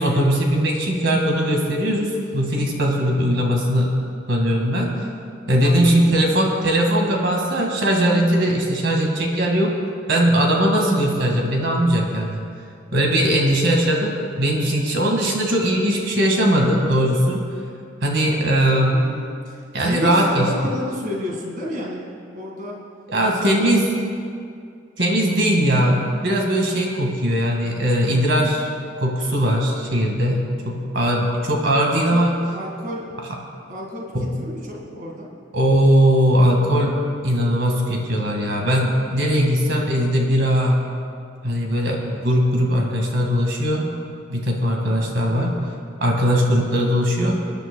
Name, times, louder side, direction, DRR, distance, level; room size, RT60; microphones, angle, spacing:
voice 1, 0.0-3.9 4.3-4.9 5.5-9.7 10.1-12.4 12.9-17.4 18.0-19.0 19.7-20.5 23.1-23.8 25.0-28.7 29.0-32.4 34.1-34.3 35.5-37.0 37.2-40.8 41.4-43.9 44.3-45.6 46.0-47.4, equal, 65° right, 0 dB, 1.9 m, -19 dB
voice 2, 5.6-6.1 18.9-22.0 22.3-22.8 23.2-23.9 32.1-32.2 32.5-33.1 33.7-35.3 45.2-45.8, equal, 45° right, -2 dB, 1.9 m, -31 dB
27.5 x 10.5 x 2.3 m, 2.3 s
head